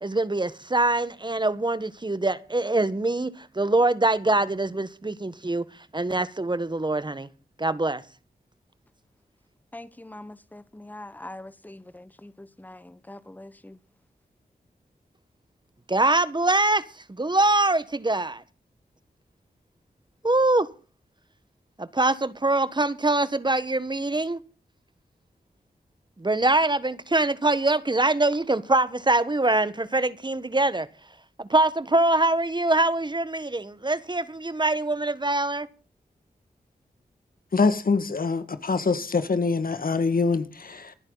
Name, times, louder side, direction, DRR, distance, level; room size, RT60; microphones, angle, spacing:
voice 1, 0.0-5.6 5.9-7.3 7.6-8.0 15.9-16.8 17.2-18.4 20.2-20.7 21.8-24.4 26.2-30.9 31.4-35.7, right 2 dB, 30° right, 1.2 m, -23 dB
voice 2, 9.7-13.8, left 1 dB, 10° left, 1.1 m, -43 dB
voice 3, 37.5-41.0, left 4 dB, 60° left, 1.8 m, -24 dB
25.0 x 8.8 x 4.0 m
cardioid pair, 50°, 16 cm